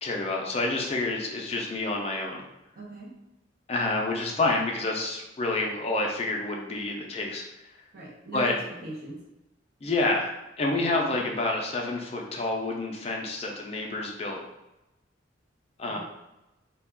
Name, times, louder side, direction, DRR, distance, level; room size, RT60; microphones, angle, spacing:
voice 1, 0.0-2.4 3.7-7.4 8.3-8.6 9.8-10.3 10.6-14.4 15.8-16.0, left 2 dB, 35° left, 0 dB, 0.4 m, -28 dB
voice 2, 2.8-3.1 7.9-8.6 8.8-9.2 15.9-16.0, right 2 dB, 50° right, -4 dB, 0.6 m, -39 dB
2.3 x 2.2 x 3.4 m, 0.95 s
head